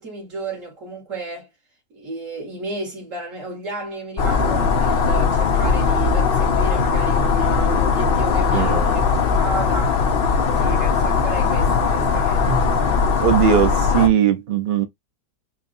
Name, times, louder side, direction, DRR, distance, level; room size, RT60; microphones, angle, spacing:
voice 1, 0.0-1.5 1.9-9.0 9.4-10.0 10.5-12.7, right 1 dB, 45° right, 2.7 m, -33 dB
sound 1, 4.2-14.1, left 5 dB, 70° left, 0.5 m, -19 dB
voice 2, 8.5-9.0 12.5-12.7 13.2-14.8, right 8 dB, 85° right, 0.4 m, -19 dB
4.6 x 2.8 x 2.6 m
omnidirectional pair, 1.9 m